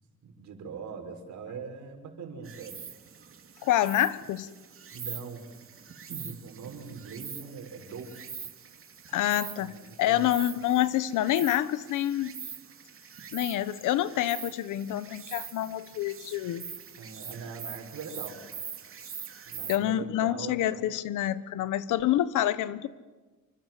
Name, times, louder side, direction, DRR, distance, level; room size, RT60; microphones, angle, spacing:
voice 1, 0.2-2.8 4.9-5.4 6.1-8.1 9.6-10.4 17.0-18.4 19.4-20.6, right 5 dB, 70° right, 5 dB, 5.6 m, -41 dB
Insect, 2.4-19.8, right 7 dB, 45° right, 2.8 m, -43 dB
voice 2, 3.6-4.5 9.1-9.7 10.0-12.3 13.3-16.7 19.7-22.9, left 13 dB, 90° left, 15 dB, 1.2 m, -27 dB
28.5 x 25.0 x 7.7 m, 1.3 s
cardioid pair, 90°, 30 cm